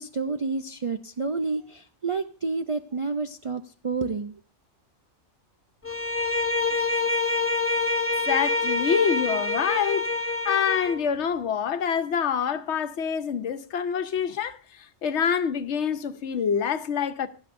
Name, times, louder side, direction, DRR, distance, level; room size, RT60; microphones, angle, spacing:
voice 1, 0.0-4.3, right 4 dB, 50° right, 0.4 m, -29 dB
Bowed string instrument, 5.8-11.0, left 2 dB, 15° left, 0.7 m, -26 dB
voice 2, 8.3-10.1 10.4-14.6 15.0-17.3, left 7 dB, 75° left, 1.1 m, -26 dB
16.5 x 10.5 x 2.6 m
omnidirectional pair, 1.2 m